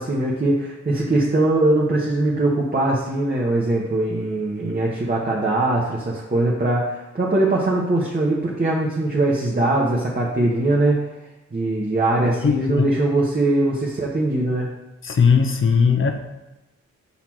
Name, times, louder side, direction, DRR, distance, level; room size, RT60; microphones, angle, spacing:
voice 1, 0.0-11.0 11.5-14.7, right 2 dB, 30° right, -3 dB, 1.2 m, -21 dB
voice 2, 12.3-12.9 15.0-16.1, left 6 dB, 45° left, 5 dB, 0.8 m, -18 dB
5.7 x 4.2 x 4.5 m, 1.0 s
cardioid pair, 55°, 29 cm